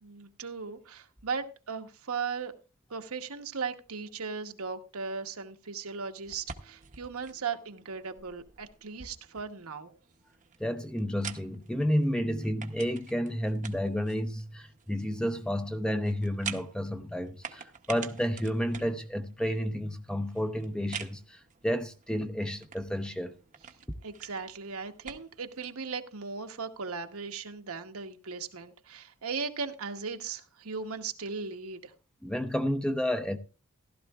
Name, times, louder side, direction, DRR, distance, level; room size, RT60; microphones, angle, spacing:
voice 1, 0.0-2.5 2.9-10.0 24.0-31.9, right 5 dB, 70° right, 1.1 m, -37 dB
sound 1, 6.2-25.7, right 6 dB, 35° right, 0.8 m, -47 dB
voice 2, 10.6-21.4 21.6-23.3 32.2-33.4, equal, 5° left, 0.6 m, -31 dB
15.5 x 12.5 x 2.4 m
head